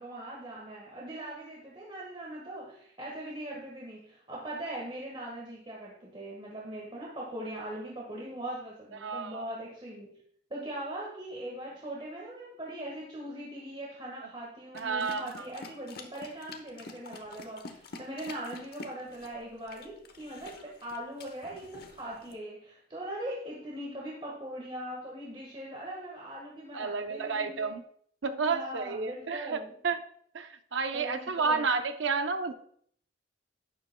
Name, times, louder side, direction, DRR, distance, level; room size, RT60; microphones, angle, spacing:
voice 1, 0.0-10.2 10.5-27.8 28.5-29.7 30.9-31.6, right 1 dB, 25° right, -3 dB, 1.5 m, -41 dB
voice 2, 9.0-9.4 14.7-15.5 26.7-27.8 28.2-30.0 30.3-32.5, right 4 dB, 75° right, 8 dB, 0.6 m, -31 dB
sound 1, 14.7-22.4, left 3 dB, 50° left, 1.0 m, -48 dB
11.5 x 9.8 x 2.2 m, 0.63 s
head